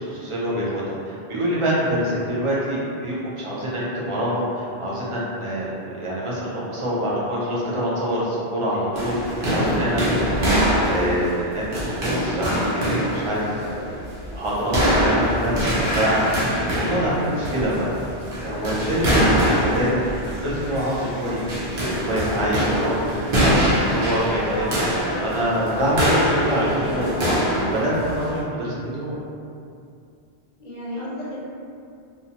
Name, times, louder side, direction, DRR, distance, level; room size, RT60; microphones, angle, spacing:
voice 1, 0.0-11.6 11.9-13.8 14.3-18.0 18.4-24.8 25.2-29.2, equal, 40° right, -7 dB, 0.4 m, -25 dB
sound 1, 9.0-28.4, equal, 60° right, 0.9 m, -24 dB
sound 2, 17.2-27.6, right 1 dB, 85° right, 0.9 m, -40 dB
voice 2, 30.6-31.4, equal, 50° left, -8 dB, 0.6 m, -33 dB
2.5 x 2.1 x 2.8 m, 2.4 s
omnidirectional pair, 1.1 m